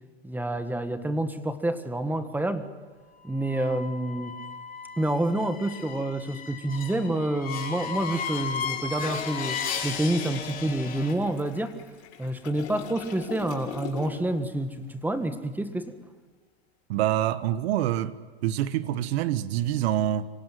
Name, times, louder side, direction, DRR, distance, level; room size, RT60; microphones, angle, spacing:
voice 1, 0.2-2.7 3.2-4.4 5.0-11.8 12.2-15.9, right 1 dB, 5° right, 1.6 m, -28 dB
sound 1, 3.4-11.1, left 6 dB, 25° left, 3.7 m, -35 dB
Toilet flush, 8.4-14.4 14.7-14.9, left 6 dB, 80° left, 5.6 m, -42 dB
voice 2, 16.9-18.2 18.4-20.3, right 12 dB, 70° right, 1.3 m, -26 dB
26.0 x 17.5 x 9.3 m
supercardioid pair, 120°, 32 cm